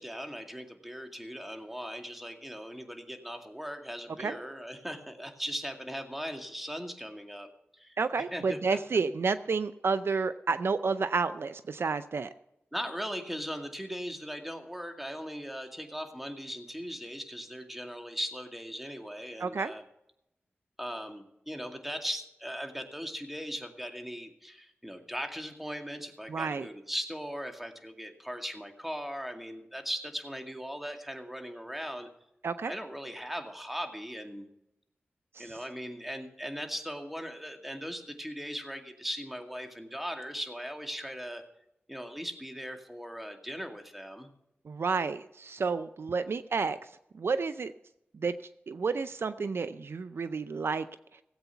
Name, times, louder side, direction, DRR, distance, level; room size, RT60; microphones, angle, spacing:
voice 1, 0.0-7.5 7.7-8.8 12.7-19.8 20.8-32.1 32.7-34.5 35.4-41.4 41.9-44.3, equal, 5° right, 4 dB, 2.1 m, -39 dB
voice 2, 8.0-12.3 19.4-19.7 26.3-26.7 32.4-32.7 35.4-35.5 44.7-46.8 47.1-47.7 48.1-48.3 48.7-50.9, right 4 dB, 65° right, 12 dB, 0.5 m, -30 dB
17.0 x 8.1 x 5.7 m, 0.83 s
cardioid pair, 45°, 4 cm